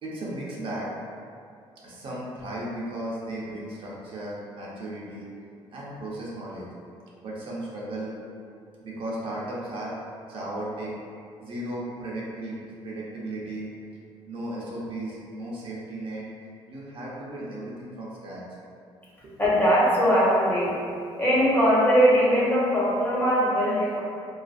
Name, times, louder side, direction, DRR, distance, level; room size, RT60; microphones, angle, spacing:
voice 1, 0.0-0.9 1.8-5.3 5.7-6.7 7.2-8.1 8.8-9.9 10.3-10.9 11.4-12.6 12.8-13.7 14.3-16.3 16.7-18.4 19.2-19.3, right 1 dB, 55° right, -6 dB, 0.6 m, -35 dB
voice 2, 19.4-20.8 21.2-24.0, equal, 20° left, -7 dB, 0.7 m, -21 dB
2.4 x 2.3 x 2.4 m, 2.4 s
cardioid pair, 95°, 11 cm